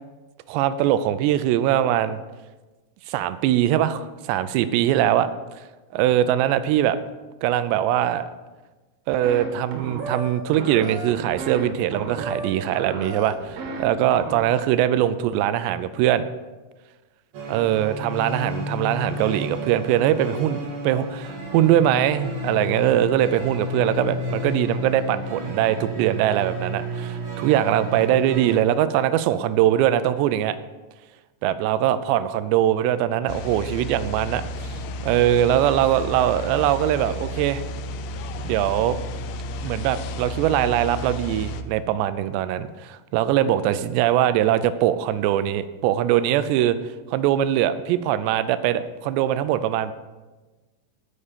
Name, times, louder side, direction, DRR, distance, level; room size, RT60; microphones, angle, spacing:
voice 1, 0.5-2.2 3.1-5.3 5.9-7.0 7.4-8.2 9.1-16.3 17.5-30.6 31.4-37.6 38.4-39.0 39.6-46.8 47.1-49.9, right 11 dB, 85° right, 13 dB, 2.7 m, -22 dB
sound 1, 9.2-9.4 9.7-10.3 10.5-11.6 11.9-12.5 12.7-13.8 14.1-14.4, right 2 dB, 65° right, 3.2 m, -33 dB
sound 2, 17.3-28.6, equal, 50° right, 2.0 m, -32 dB
sound 3, 33.3-41.6, left 1 dB, 85° left, 2.1 m, -32 dB
9.9 x 9.7 x 5.1 m, 1.2 s
omnidirectional pair, 5.1 m